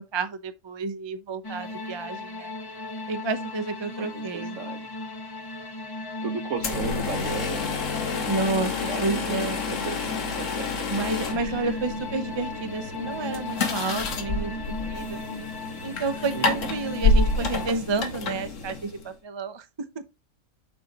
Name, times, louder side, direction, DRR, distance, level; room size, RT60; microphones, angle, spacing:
voice 1, 0.0-2.5 3.1-4.6 8.3-8.7 9.0-9.6 10.9-15.2 15.8-19.7 19.9-20.0, right 3 dB, 30° right, 0.5 m, -30 dB
sound 1, 1.4-17.7, left 2 dB, 35° left, 0.3 m, -37 dB
voice 2, 4.0-4.8 6.2-7.6 8.9-10.9 11.3-11.8 16.3-16.7, right 6 dB, 60° right, 1.2 m, -36 dB
sound 2, 6.6-19.1, left 3 dB, 60° left, 1.6 m, -29 dB
7.0 x 4.2 x 4.0 m
omnidirectional pair, 1.5 m